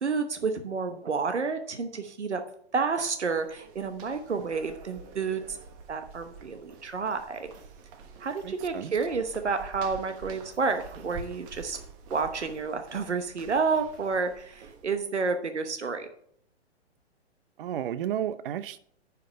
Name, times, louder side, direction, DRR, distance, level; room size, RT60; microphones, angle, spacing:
voice 1, 0.0-2.4 2.7-5.6 5.9-7.5 8.2-11.8 12.1-16.1, right 4 dB, 85° right, 1.1 m, -30 dB
sound 1, 3.0-15.1, right 5 dB, 30° right, 1.2 m, -48 dB
voice 2, 8.4-8.9 17.6-18.8, right 10 dB, 55° right, 0.5 m, -32 dB
10.0 x 5.7 x 5.3 m
figure-of-eight pair, 120°, 34 cm